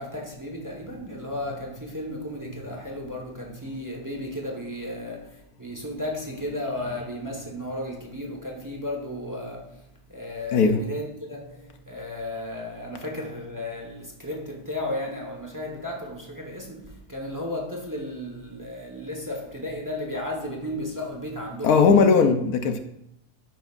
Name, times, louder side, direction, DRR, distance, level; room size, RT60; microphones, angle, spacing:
voice 1, 0.0-21.9, left 1 dB, 15° right, 1.1 m, -34 dB
voice 2, 10.5-10.8 21.6-22.8, left 5 dB, 75° left, 1.3 m, -18 dB
10.5 x 9.1 x 2.5 m
omnidirectional pair, 1.7 m